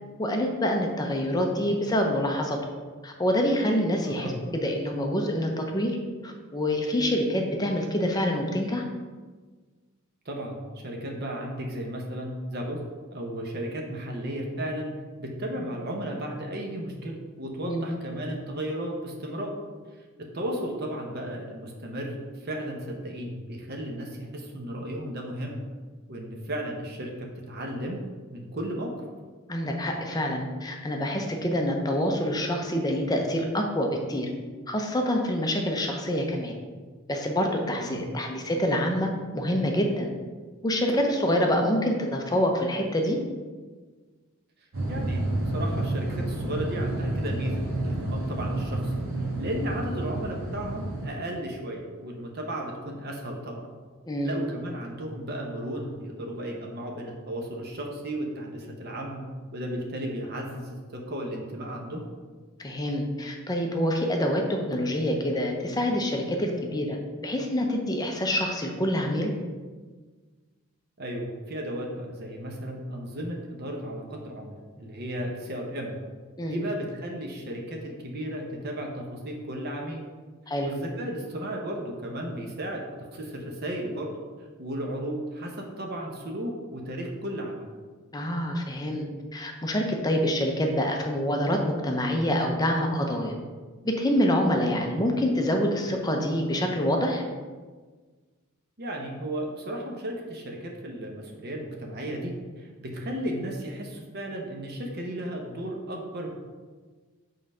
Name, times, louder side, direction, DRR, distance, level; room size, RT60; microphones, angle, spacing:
voice 1, 0.2-2.6 3.0-6.0 6.2-8.8 17.7-17.9 29.5-34.3 34.7-36.5 37.1-40.1 40.6-43.2 54.1-54.4 62.6-67.0 67.2-69.3 76.4-76.6 80.5-80.7 88.1-89.0 89.3-91.6 91.8-93.3 93.8-97.2, equal, 20° left, 2 dB, 0.6 m, -26 dB
voice 2, 10.2-12.8 13.1-14.9 15.2-19.5 20.3-25.6 26.1-28.0 28.3-28.9 37.8-38.0 44.9-48.9 49.4-53.7 54.2-59.2 59.5-62.0 71.0-76.0 76.5-80.0 80.6-82.8 83.1-84.1 84.6-87.7 94.7-94.9 98.8-106.3, right 1 dB, 50° right, 0 dB, 0.9 m, -34 dB
sound 1, 44.7-51.1, right 1 dB, 65° right, 1.6 m, -29 dB
5.4 x 3.8 x 5.5 m, 1.4 s
head